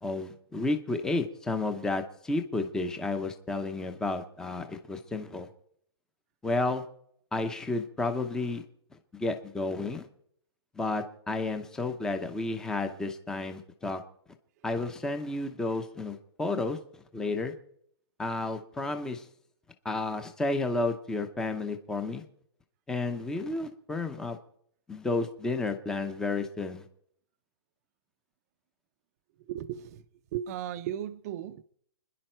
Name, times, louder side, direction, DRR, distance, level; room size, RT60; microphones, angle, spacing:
voice 1, 0.0-5.5 6.4-6.8 7.3-8.6 9.1-10.1 10.7-14.0 14.6-16.8 17.1-17.5 18.2-19.3 19.8-22.2 22.9-24.4 24.9-26.9, left 3 dB, 5° left, 0.7 m, -31 dB
voice 2, 29.5-30.0 30.3-31.6, right 11 dB, 35° right, 0.6 m, -35 dB
30.0 x 10.5 x 4.5 m
hypercardioid pair, 165°, 15 cm